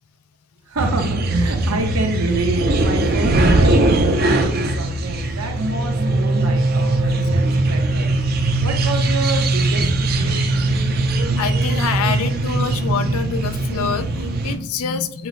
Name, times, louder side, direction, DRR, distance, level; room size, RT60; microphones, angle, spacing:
voice 1, 0.7-8.1 8.6-10.4, right 2 dB, 80° right, 3 dB, 0.8 m, -28 dB
sound 1, 0.8-14.6, right 2 dB, 45° right, 0.5 m, -20 dB
voice 2, 11.4-15.3, left 6 dB, 85° left, 11 dB, 0.4 m, -26 dB
5.8 x 2.0 x 3.8 m, 0.65 s
head